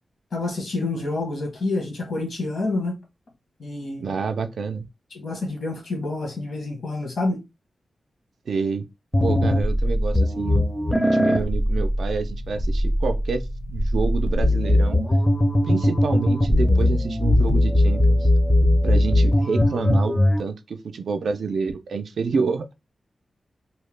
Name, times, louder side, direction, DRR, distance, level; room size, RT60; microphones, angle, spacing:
voice 1, 0.3-3.0 3.6-4.2 5.1-7.4, left 2 dB, 65° left, 1.1 m, -28 dB
voice 2, 4.0-4.8 8.5-8.8 9.2-10.7 10.9-13.4 13.7-15.0 15.6-18.3 18.8-22.7, right 5 dB, 80° right, 0.3 m, -28 dB
sound 1, 9.1-20.4, left 1 dB, 10° left, 0.5 m, -20 dB
2.7 x 2.1 x 3.1 m
wide cardioid pair, 150°, 0 cm